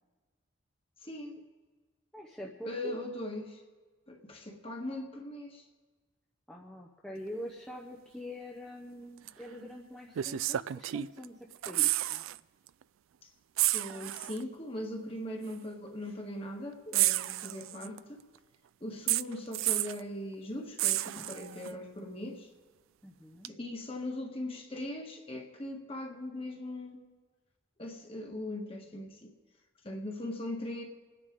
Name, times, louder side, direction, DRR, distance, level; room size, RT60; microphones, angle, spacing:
voice 1, 1.0-1.4 2.6-3.6 4.1-5.6 13.6-18.2 18.8-22.5 23.4-27.0 27.8-29.3 29.8-30.8, left 1 dB, 25° left, 2 dB, 1.6 m, -40 dB
voice 2, 2.1-3.0 6.5-11.4 11.7-12.2 23.0-23.5, left 1 dB, 5° left, -2 dB, 0.8 m, -44 dB
sound 1, 9.3-9.4 10.1-11.2 11.5-12.4 12.7-12.8 13.6-14.4 15.5-15.6 16.9-18.0 19.1-20.0 20.8-21.7 23.4-23.5, right 16 dB, 75° right, 0.3 m, -30 dB
29.5 x 9.9 x 3.7 m, 1.3 s
head